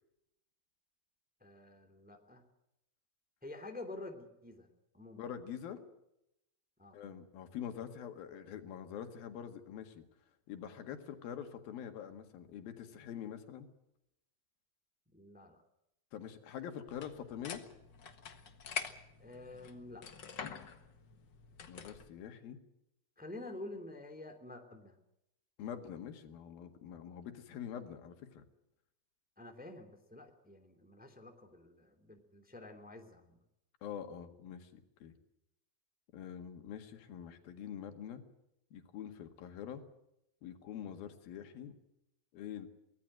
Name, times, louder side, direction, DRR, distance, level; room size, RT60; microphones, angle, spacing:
voice 1, 1.4-2.4 3.4-5.2 6.8-7.0 15.1-15.6 19.2-20.0 23.2-25.0 29.4-33.3, left 2 dB, 5° right, 5 dB, 2.1 m, -49 dB
voice 2, 5.2-5.8 6.9-10.0 10.5-13.7 16.1-17.6 21.7-22.6 25.6-28.4 33.8-35.1 36.1-38.2 38.7-39.8 40.4-41.8 42.3-42.7, left 9 dB, 80° left, 7 dB, 3.7 m, -45 dB
sound 1, 16.9-22.1, left 6 dB, 50° left, 1.4 m, -46 dB
24.0 x 18.0 x 7.8 m, 0.83 s
omnidirectional pair, 4.2 m